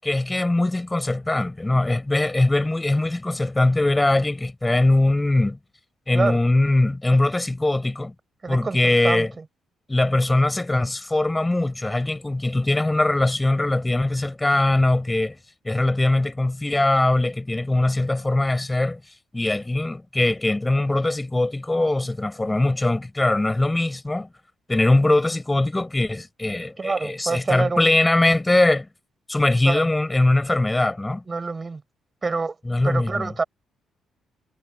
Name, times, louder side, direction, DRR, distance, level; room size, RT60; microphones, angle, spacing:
voice 1, 0.0-5.6 6.1-8.1 8.5-9.3 9.9-15.4 15.6-19.0 19.3-24.3 24.7-28.9 29.3-31.2 32.6-33.3, left 2 dB, 15° left, 6.1 m, -21 dB
voice 2, 8.4-9.4 10.0-10.2 26.8-27.9 29.6-29.8 31.3-31.8 32.2-32.6 32.8-33.4, right 4 dB, 30° right, 6.1 m, -27 dB
cardioid pair, 90°, 0 cm